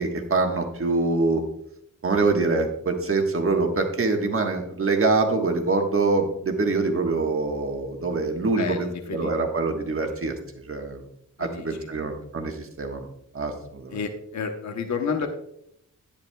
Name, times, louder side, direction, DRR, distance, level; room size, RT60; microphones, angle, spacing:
voice 1, 0.0-1.4 2.0-10.4 10.7-11.0 11.4-13.1 13.3-14.0, right 3 dB, 40° right, 3 dB, 1.3 m, -24 dB
voice 2, 8.6-9.3 10.0-10.2 11.4-12.1 13.9-15.3, left 6 dB, 60° left, 5 dB, 1.0 m, -31 dB
10.0 x 10.0 x 2.3 m, 0.73 s
wide cardioid pair, 115°, 32 cm